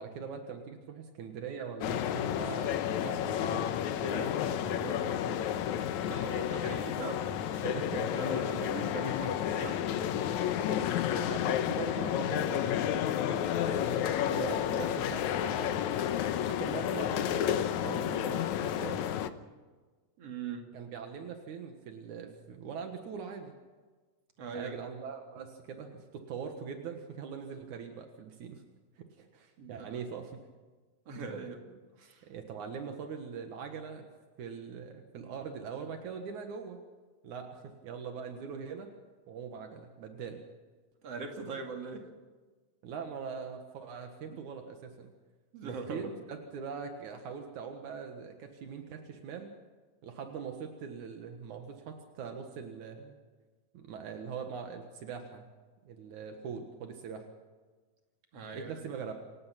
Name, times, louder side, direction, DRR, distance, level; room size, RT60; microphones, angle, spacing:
voice 1, 0.0-5.5 7.6-8.2 11.0-15.8 16.5-19.0 20.7-23.5 24.5-28.6 29.0-30.4 32.2-34.1 34.4-36.8 37.2-38.9 39.3-40.4 42.8-45.1 45.6-49.5 50.0-53.2 53.7-55.5 55.9-57.3 58.5-59.1, right 6 dB, 80° right, 5 dB, 3.0 m, -42 dB
sound 1, 1.8-19.3, left 10 dB, 80° left, 2.2 m, -31 dB
voice 2, 6.0-7.7 8.1-9.9 20.2-20.7 24.4-24.8 29.6-30.0 31.1-32.3 41.0-42.1 44.3-44.4 45.5-46.2 58.3-58.7, right 4 dB, 55° right, 3 dB, 3.5 m, -41 dB
28.0 x 16.5 x 5.9 m, 1.4 s
omnidirectional pair, 3.4 m